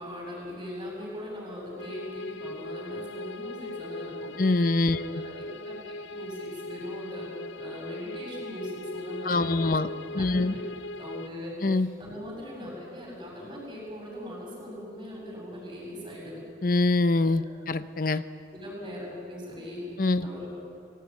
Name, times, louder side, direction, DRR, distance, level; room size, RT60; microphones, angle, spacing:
voice 1, 0.0-4.3 4.9-5.8 6.1-7.3 7.6-10.7 11.0-16.4 17.2-17.7 18.5-20.5, left 1 dB, 25° right, -2 dB, 7.8 m, -40 dB
sound 1, 1.8-11.3, left 1 dB, 85° left, 0.7 m, -39 dB
voice 2, 4.4-5.1 9.2-9.9 10.1-10.5 11.6-11.9 16.6-18.2 20.0-20.3, left 2 dB, 50° left, 13 dB, 0.7 m, -24 dB
26.5 x 16.0 x 9.6 m, 2.3 s
head